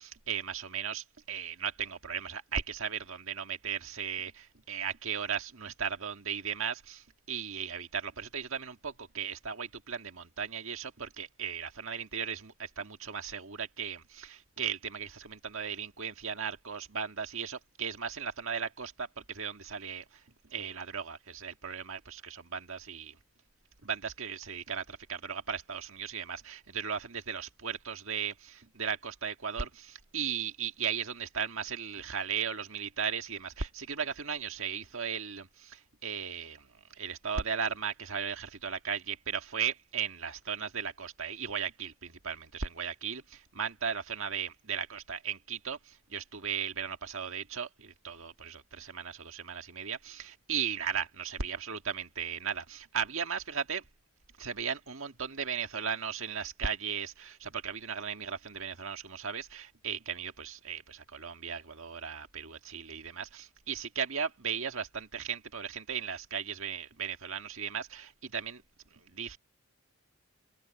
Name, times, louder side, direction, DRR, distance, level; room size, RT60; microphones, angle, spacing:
voice 1, 0.0-23.2 23.8-53.8 54.4-68.6 68.9-69.4, right 7 dB, 65° right, 1.8 m, -36 dB
open air
head